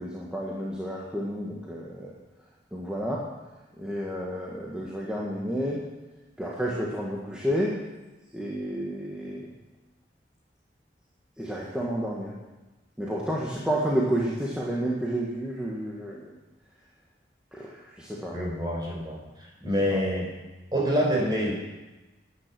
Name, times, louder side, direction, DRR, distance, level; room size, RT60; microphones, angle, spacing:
voice 1, 0.0-2.1 2.7-3.3 3.8-5.8 6.4-7.8 8.3-9.4 11.4-12.3 13.0-16.3 17.5-18.4 19.9-20.0, equal, 5° right, -5 dB, 1.7 m, -30 dB
voice 2, 18.3-19.2 19.6-20.3 20.7-21.5, equal, 25° right, -2 dB, 4.5 m, -26 dB
14.5 x 9.9 x 6.1 m, 1.1 s
head